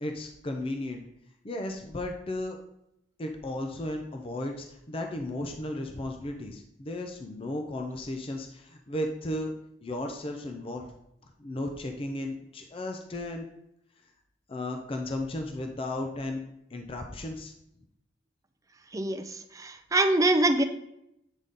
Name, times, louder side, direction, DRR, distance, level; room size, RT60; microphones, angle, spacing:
voice 1, 0.0-1.0 1.4-2.6 3.2-9.5 9.8-10.9 11.4-13.5 14.5-16.4 16.7-17.5, left 1 dB, 30° left, 4 dB, 0.5 m, -34 dB
voice 2, 18.9-20.6, right 2 dB, 20° right, 7 dB, 0.5 m, -24 dB
8.2 x 3.9 x 3.7 m, 0.80 s
head